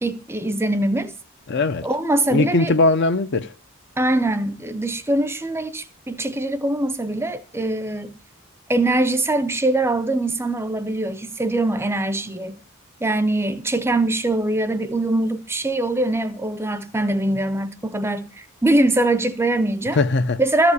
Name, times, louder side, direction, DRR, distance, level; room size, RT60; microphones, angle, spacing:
voice 1, 0.0-1.1 1.8-2.7 4.0-8.1 8.7-12.6 13.0-20.0 20.4-20.7, right 2 dB, 10° right, 0.6 m, -22 dB
voice 2, 1.5-1.9 2.3-3.5 20.0-20.4, left 2 dB, 55° left, 0.6 m, -19 dB
13.5 x 5.0 x 8.2 m
head